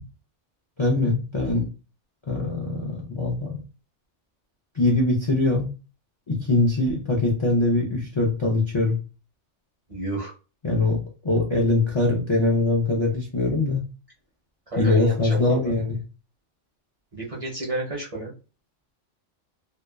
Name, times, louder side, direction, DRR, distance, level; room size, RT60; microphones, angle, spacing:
voice 1, 0.8-1.7 2.3-3.6 4.8-5.7 6.3-9.0 10.6-13.8 14.8-16.0, left 2 dB, 45° left, -2 dB, 0.3 m, -22 dB
voice 2, 9.9-10.3 14.7-15.7 17.1-18.3, right 2 dB, 35° right, -4 dB, 0.6 m, -30 dB
2.8 x 2.2 x 2.2 m, 0.33 s
omnidirectional pair, 1.3 m